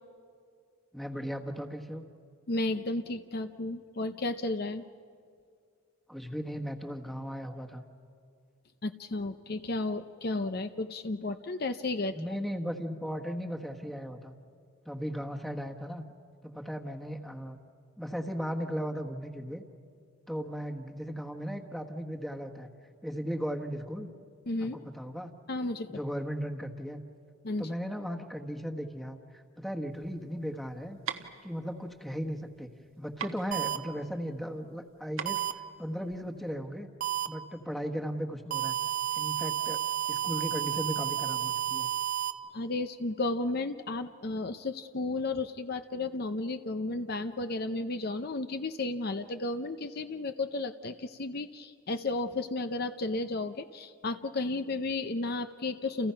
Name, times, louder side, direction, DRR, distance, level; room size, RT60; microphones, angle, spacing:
voice 1, 0.9-2.0 6.1-7.8 12.1-14.3 14.8-16.0 16.4-17.6 18.0-19.6 20.3-22.7 23.0-24.1 24.6-25.3 25.9-27.0 27.6-31.0 31.4-32.7 33.0-35.4 35.8-36.9 37.3-38.8 39.1-39.8 40.1-41.9, equal, ahead, 3 dB, 1.4 m, -36 dB
voice 2, 2.5-4.9 8.8-12.2 24.5-24.8 25.5-26.0 27.4-27.7 42.5-56.1, left 2 dB, 45° left, 9 dB, 0.6 m, -33 dB
sound 1, 29.9-36.5, right 7 dB, 70° right, 1.3 m, -43 dB
sound 2, 33.5-33.8 35.3-35.5 37.0-37.3 38.5-42.3, right 12 dB, 40° right, 0.9 m, -31 dB
30.0 x 29.5 x 5.8 m, 2.3 s
head